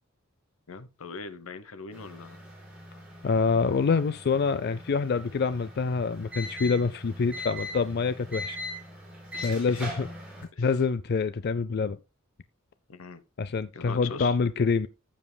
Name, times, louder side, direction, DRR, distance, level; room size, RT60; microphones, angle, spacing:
voice 1, 0.7-2.4 9.3-10.0 10.5-10.7 12.9-13.2 13.7-14.4, left 4 dB, 80° left, 0.9 m, -41 dB
sound 1, 1.9-10.4, left 1 dB, 5° right, 5.2 m, -41 dB
voice 2, 3.2-8.6 9.4-10.1 10.6-12.0 13.4-14.9, left 4 dB, 50° left, 0.4 m, -26 dB
15.0 x 7.4 x 2.2 m
head